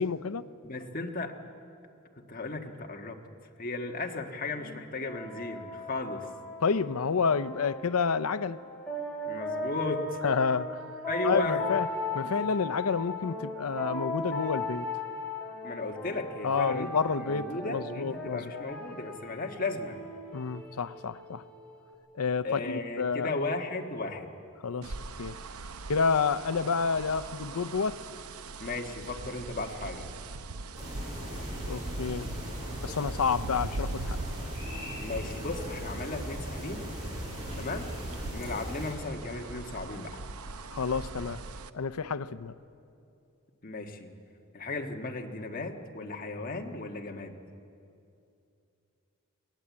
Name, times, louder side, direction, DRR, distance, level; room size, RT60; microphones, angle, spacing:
voice 1, 0.0-0.4 6.6-8.6 10.2-10.8 11.2-11.9 12.1-14.9 16.4-18.7 20.3-21.4 22.2-23.3 24.6-24.9 25.2-25.4 25.9-28.0 31.7-32.3 32.8-34.2 40.7-41.4 41.7-42.5, left 5 dB, 85° left, 0.6 m, -29 dB
voice 2, 0.6-1.3 2.2-3.2 3.6-6.3 9.3-10.2 11.1-11.6 15.6-16.9 17.2-20.0 22.4-24.3 28.6-30.1 35.0-36.8 37.6-37.9 38.3-40.2 43.6-44.1 44.5-47.3, left 2 dB, 40° left, 1.6 m, -35 dB
sound 1, 4.5-21.9, left 2 dB, 5° left, 4.1 m, -38 dB
sound 2, 24.8-41.7, right 3 dB, 80° right, 0.7 m, -41 dB
sound 3, 30.8-38.9, equal, 15° right, 7.9 m, -38 dB
21.0 x 18.5 x 8.4 m
head